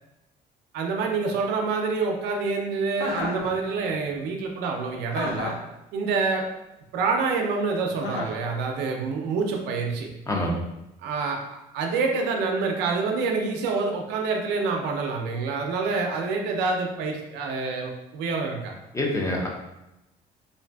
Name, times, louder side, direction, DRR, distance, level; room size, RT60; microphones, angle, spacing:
voice 1, 0.7-5.6 5.9-6.5 6.9-10.1 11.0-18.7, right 4 dB, 90° right, 2 dB, 0.5 m, -27 dB
Chuckle chortle, 3.0-3.5 5.1-5.7 8.0-8.4, left 1 dB, 85° left, 0.6 m, -31 dB
voice 2, 10.3-10.6 18.9-19.5, left 1 dB, 20° left, -1 dB, 0.5 m, -26 dB
2.5 x 2.4 x 2.2 m, 0.93 s
cardioid pair, 110°, 17 cm